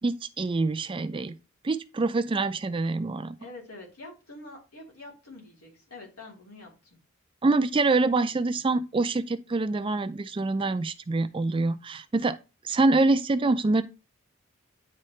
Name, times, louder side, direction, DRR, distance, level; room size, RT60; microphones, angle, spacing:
voice 1, 0.0-1.3 1.6-3.4 7.4-12.4 12.6-13.8, right 3 dB, 25° right, 0.4 m, -25 dB
voice 2, 3.4-7.0, left 2 dB, 90° left, 3.1 m, -46 dB
9.8 x 3.7 x 3.2 m
head